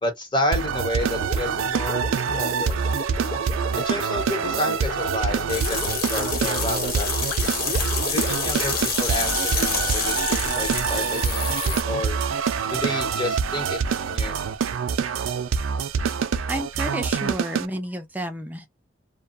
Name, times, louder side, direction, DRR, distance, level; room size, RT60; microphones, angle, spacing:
voice 1, 0.0-2.8 3.8-7.2 8.1-12.2 12.7-14.4, left 1 dB, 25° left, 0.9 m, -30 dB
sound 1, 0.5-17.7, right 6 dB, 80° right, 0.4 m, -26 dB
Gurgling, 1.1-9.5, left 2 dB, 90° left, 0.7 m, -36 dB
sound 2, 5.5-11.8, left 4 dB, 45° left, 1.0 m, -28 dB
voice 2, 16.5-18.7, right 1 dB, 10° right, 0.3 m, -31 dB
2.6 x 2.2 x 2.5 m
head